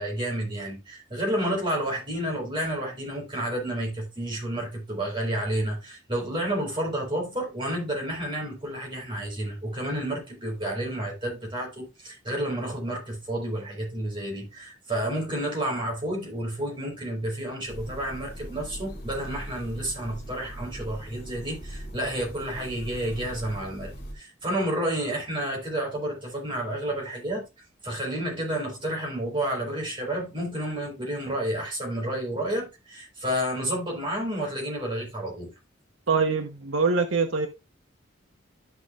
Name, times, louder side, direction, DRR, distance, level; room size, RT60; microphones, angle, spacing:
voice 1, 0.0-27.4 27.8-35.5, right 1 dB, 25° right, 4.5 m, -30 dB
sound 1, 17.7-24.1, equal, 50° left, 2.7 m, -40 dB
voice 2, 36.1-37.5, right 4 dB, 85° right, 1.0 m, -24 dB
13.5 x 5.5 x 2.5 m
head